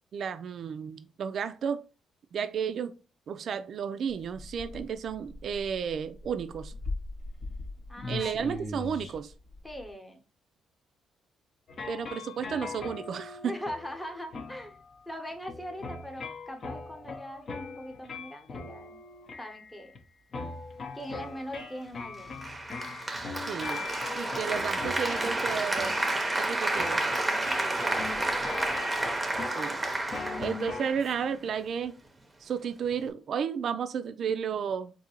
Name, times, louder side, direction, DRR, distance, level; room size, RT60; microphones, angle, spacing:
voice 1, 0.1-1.8 2.3-2.9 3.3-6.7 8.1-9.3 11.9-13.6 23.5-23.9 24.1-25.9 26.4-27.0 29.6-29.9 30.4-31.9 32.4-34.9, right 7 dB, 60° right, 0.3 m, -32 dB
sound 1, 4.1-9.9, left 2 dB, 75° left, 1.4 m, -38 dB
voice 2, 7.9-8.6 9.6-10.2 13.4-14.8 15.1-19.0 19.4-20.0 20.9-22.3 23.8-24.4, equal, 10° left, 0.9 m, -41 dB
sound 2, 11.7-20.0 20.3-30.9, left 4 dB, 50° left, 0.6 m, -41 dB
Applause, 22.4-31.4, right 2 dB, 20° right, 0.7 m, -30 dB
3.7 x 2.7 x 2.8 m
cardioid pair, 90°, 0 cm